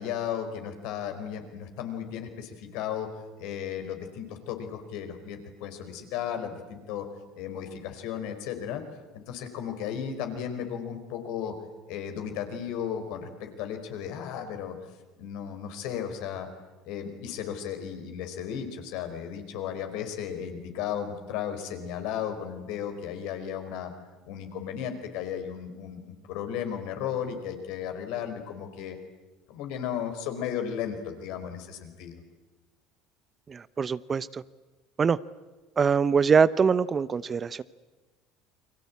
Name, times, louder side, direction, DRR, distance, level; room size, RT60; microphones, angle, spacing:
voice 1, 0.0-7.1 7.3-8.8 9.1-11.5 11.9-14.8 15.2-16.5 16.8-23.9 24.2-29.0 29.5-32.2, left 8 dB, 65° left, 6 dB, 4.7 m, -35 dB
voice 2, 33.5-34.4 35.0-35.2 35.8-37.6, right 6 dB, 30° right, 18 dB, 0.9 m, -23 dB
30.0 x 23.0 x 8.6 m, 1.2 s
hypercardioid pair, 65°, 0 cm